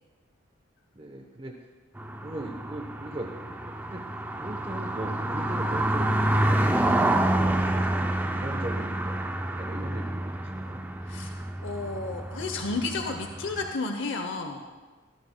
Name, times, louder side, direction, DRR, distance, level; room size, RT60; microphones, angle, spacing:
voice 1, 0.9-1.6 2.2-4.0 4.4-10.8, right 1 dB, 25° right, 2 dB, 0.8 m, -39 dB
sound 1, 2.0-13.7, right 1 dB, 10° right, 0.4 m, -28 dB
voice 2, 11.1-14.6, left 3 dB, 70° left, 5 dB, 0.8 m, -32 dB
17.5 x 14.0 x 2.2 m, 1.4 s
head